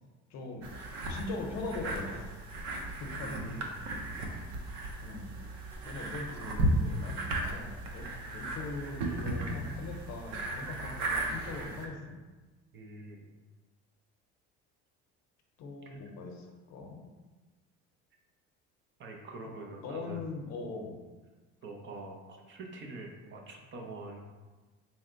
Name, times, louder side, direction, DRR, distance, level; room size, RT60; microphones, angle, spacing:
voice 1, 0.3-0.7 1.0-2.4 3.0-3.4 5.0-5.3 5.8-12.2 15.6-17.0 19.8-21.0, left 3 dB, 65° left, 3 dB, 0.7 m, -41 dB
sound 1, 0.6-11.9, right 1 dB, 80° right, 0.7 m, -35 dB
voice 2, 3.2-3.8 12.7-13.3 15.9-16.0 19.0-20.3 21.6-24.2, right 2 dB, 40° right, 1 dB, 0.6 m, -45 dB
4.1 x 2.1 x 3.8 m, 1.2 s
cardioid pair, 125°, 29 cm